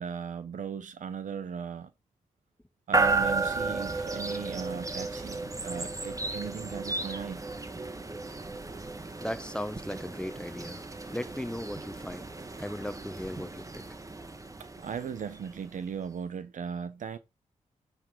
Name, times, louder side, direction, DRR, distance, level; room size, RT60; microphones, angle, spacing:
voice 1, 0.0-1.9 2.9-7.4 14.8-17.2, right 7 dB, 70° right, 1.0 m, -37 dB
sound 1, 2.9-15.9, right 3 dB, 25° right, 1.4 m, -34 dB
voice 2, 9.2-10.8 11.1-12.3 12.6-13.8, left 1 dB, 5° left, 1.1 m, -37 dB
9.6 x 3.7 x 4.9 m
cardioid pair, 50°, 14 cm